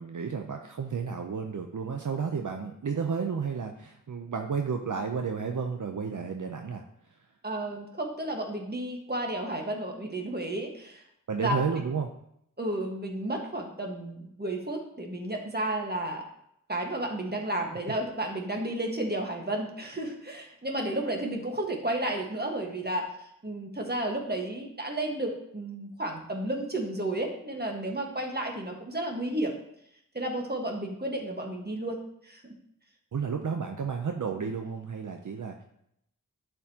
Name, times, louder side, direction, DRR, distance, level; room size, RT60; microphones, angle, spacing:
voice 1, 0.0-6.8 11.3-12.1 33.1-35.6, right 6 dB, 65° right, 4 dB, 0.6 m, -32 dB
voice 2, 7.4-11.0 11.4-11.6 12.6-16.2 16.7-29.5 30.1-32.0 32.2-32.6, right 1 dB, 30° right, 1 dB, 1.4 m, -32 dB
11.0 x 4.6 x 2.8 m, 0.76 s
wide cardioid pair, 50°, 33 cm